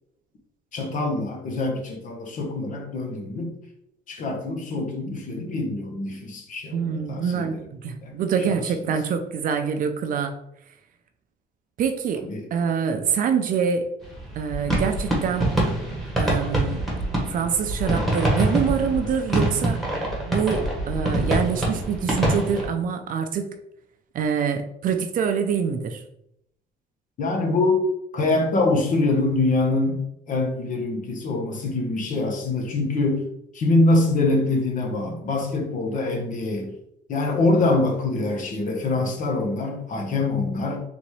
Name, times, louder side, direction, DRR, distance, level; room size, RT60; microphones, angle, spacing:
voice 1, 0.7-3.6 4.1-7.6 8.0-8.2 8.5-8.9 12.2-12.5 27.2-27.8 28.1-33.2 33.5-36.7 37.1-40.8, left 2 dB, 50° left, 2 dB, 1.1 m, -24 dB
voice 2, 6.7-10.3 11.8-13.9 14.4-15.5 16.2-16.9 17.3-19.8 20.3-23.5 24.1-26.0, right 7 dB, 55° right, 7 dB, 0.6 m, -25 dB
sound 1, 14.0-22.7, right 1 dB, ahead, 1.5 m, -25 dB
4.0 x 3.5 x 3.2 m, 0.76 s
cardioid pair, 110°, 17 cm